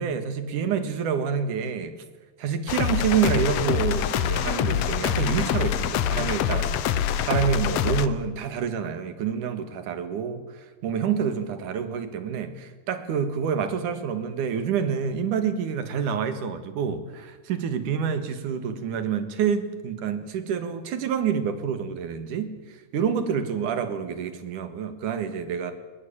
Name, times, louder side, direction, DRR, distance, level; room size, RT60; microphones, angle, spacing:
voice 1, 0.0-1.9 2.4-25.7, right 7 dB, 75° right, 10 dB, 3.3 m, -28 dB
sound 1, 2.7-8.1, left 10 dB, 65° left, 1.8 m, -25 dB
21.5 x 20.5 x 8.7 m, 1.3 s
omnidirectional pair, 3.6 m